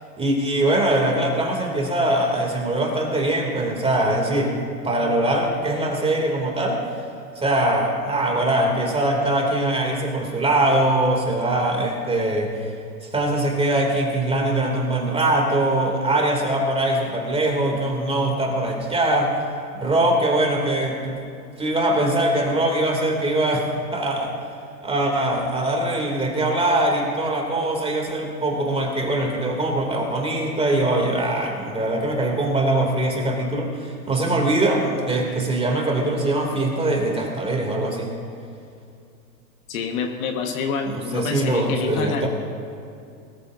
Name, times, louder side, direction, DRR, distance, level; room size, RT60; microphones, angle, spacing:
voice 1, 0.2-6.8 7.4-12.5 13.0-19.3 19.8-21.2 21.6-24.3 24.8-38.1 40.8-42.3, right 1 dB, 10° right, 1 dB, 2.7 m, -22 dB
voice 2, 39.7-42.3, left 5 dB, 55° left, 4 dB, 1.6 m, -27 dB
22.0 x 14.0 x 2.7 m, 2.5 s
hypercardioid pair, 110°, 48 cm